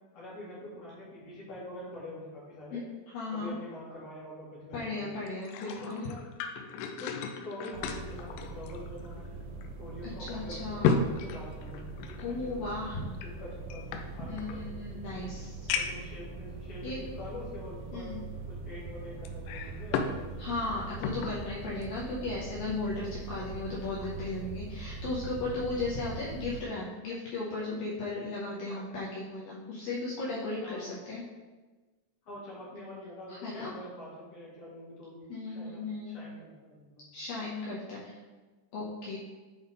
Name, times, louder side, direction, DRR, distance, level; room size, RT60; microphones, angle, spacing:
voice 1, 0.1-2.8 3.3-5.1 5.6-6.2 7.0-7.1 7.4-9.4 9.8-11.8 12.4-12.7 13.2-14.6 15.2-15.3 15.7-18.1 18.5-20.7 28.7-28.8 30.6-31.0 32.2-35.8 36.1-37.1, left 1 dB, 50° left, -8 dB, 2.2 m, -45 dB
voice 2, 3.1-3.5 4.7-6.0 10.0-11.1 12.2-13.1 14.3-15.5 16.8-17.0 17.9-18.2 20.4-31.2 33.3-33.7 35.3-36.2 37.1-38.2 38.7-39.2, left 2 dB, 75° left, -6 dB, 2.3 m, -36 dB
sound 1, 5.3-9.3 9.6-9.7 10.3-12.3 13.2-14.6 15.1-15.2 15.7-16.1 16.9-17.0 19.3-20.2 20.5-21.4 21.8-22.0, left 5 dB, 90° left, 2.7 m, -34 dB
sound 2, 7.7-26.7, right 3 dB, 80° right, 2.7 m, -42 dB
8.2 x 3.5 x 3.9 m, 1.3 s
omnidirectional pair, 4.8 m